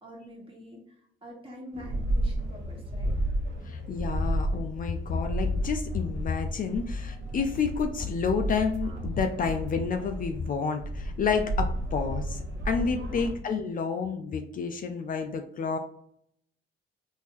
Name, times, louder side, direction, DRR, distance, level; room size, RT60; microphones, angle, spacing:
voice 1, 0.0-3.2, left 1 dB, 25° right, -2 dB, 1.4 m, -46 dB
sound 1, 1.7-10.5 10.8-13.3, right 1 dB, 65° right, 1.2 m, -32 dB
voice 2, 3.6-15.8, left 5 dB, 45° left, 6 dB, 0.4 m, -29 dB
sound 2, 7.5-9.9, left 1 dB, 80° right, 1.4 m, -40 dB
3.6 x 2.6 x 2.9 m, 0.69 s
cardioid pair, 90°, 20 cm